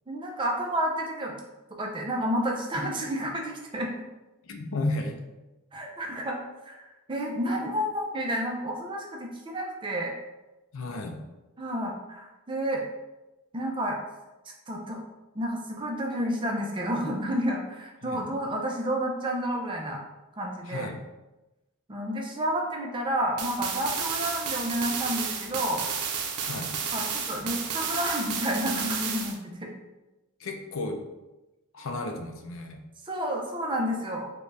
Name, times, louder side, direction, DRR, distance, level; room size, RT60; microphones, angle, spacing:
voice 1, 0.1-1.4 1.8-3.9 5.7-6.8 7.1-10.1 11.6-12.8 13.5-14.0 14.7-15.0 15.4-20.0 20.4-20.9 21.9-25.8 26.9-29.7 33.0-34.2, equal, 20° right, 0 dB, 0.4 m, -30 dB
voice 2, 4.4-5.2 10.7-11.2 18.0-18.2 20.7-21.0 26.4-26.7 30.4-31.0 31.7-32.8, left 2 dB, 60° left, 4 dB, 0.4 m, -33 dB
sound 1, 23.4-29.4, right 6 dB, 85° right, 0.5 m, -32 dB
3.8 x 2.2 x 3.2 m, 1.0 s
head